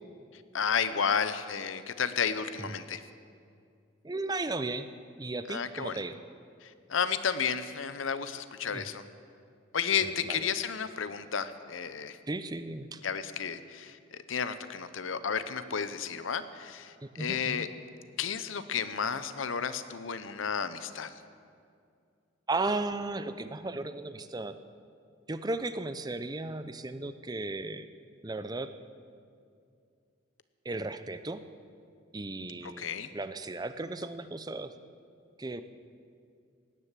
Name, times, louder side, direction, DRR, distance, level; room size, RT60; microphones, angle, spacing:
voice 1, 0.5-3.0 5.5-6.0 6.6-9.0 9.7-12.2 13.0-17.7 18.2-21.1 32.6-33.1, left 6 dB, 90° left, 12 dB, 0.8 m, -32 dB
voice 2, 4.0-4.9 5.2-6.2 8.7-8.9 10.0-10.5 12.3-13.0 17.0-17.6 22.5-24.6 25.3-27.9 28.2-28.7 30.6-31.4 32.1-32.9 33.1-34.7 35.4-35.6, right 2 dB, 20° right, 11 dB, 0.5 m, -35 dB
17.5 x 10.0 x 7.4 m, 2.4 s
head